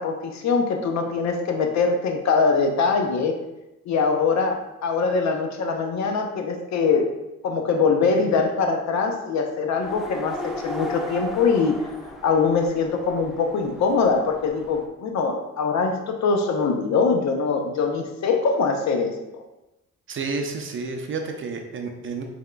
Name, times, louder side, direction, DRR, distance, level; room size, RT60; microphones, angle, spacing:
voice 1, 0.0-3.4 3.9-7.1 7.4-11.7 12.2-19.2, left 4 dB, 65° left, 4 dB, 0.6 m, -23 dB
sound 1, 9.8-14.9, equal, ahead, 0.6 m, -36 dB
voice 2, 20.1-22.2, right 4 dB, 45° right, 4 dB, 0.5 m, -30 dB
4.8 x 3.5 x 2.2 m, 0.96 s
cardioid pair, 90°, 30 cm